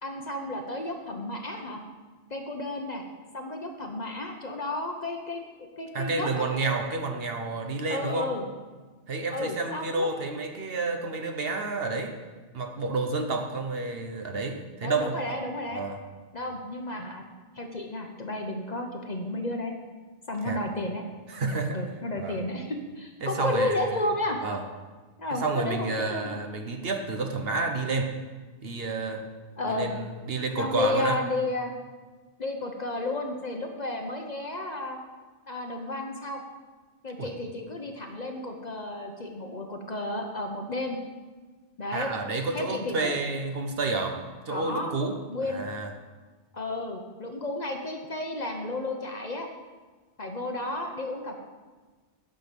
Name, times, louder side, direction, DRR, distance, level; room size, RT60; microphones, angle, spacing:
voice 1, 0.0-1.8 2.3-3.0 3.3-6.5 7.9-8.4 9.3-10.1 14.8-15.8 16.3-17.2 17.6-19.7 20.3-21.0 21.7-24.4 25.2-26.4 29.6-29.9 30.6-31.7 32.4-35.0 35.5-36.4 37.0-41.0 41.8-42.1 42.5-43.2 44.5-44.9 45.3-45.6 46.5-49.5 50.2-51.4, left 2 dB, 40° left, 3 dB, 0.9 m, -32 dB
voice 2, 5.9-8.3 9.1-12.2 12.5-15.4 15.7-16.0 20.4-20.6 21.3-21.8 22.2-22.4 23.2-23.9 24.4-24.6 25.3-28.2 28.6-29.3 29.7-31.2 37.2-37.3 41.9-45.2 45.5-45.9, right 3 dB, 55° right, 4 dB, 1.1 m, -30 dB
9.0 x 6.0 x 6.8 m, 1.3 s
omnidirectional pair, 1.2 m